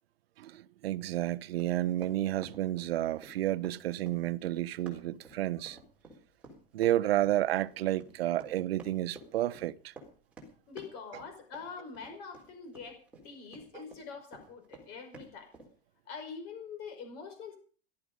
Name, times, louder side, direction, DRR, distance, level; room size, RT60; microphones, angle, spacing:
voice 1, 0.4-5.8 6.7-9.9 13.7-13.8, right 14 dB, 75° right, 1.0 m, -31 dB
Run, 1.6-14.0 14.3-15.7, right 2 dB, 5° right, 4.0 m, -52 dB
voice 2, 10.7-15.5 16.1-17.6, left 5 dB, 35° left, 5.3 m, -44 dB
18.0 x 12.5 x 5.3 m
supercardioid pair, 175°, 30 cm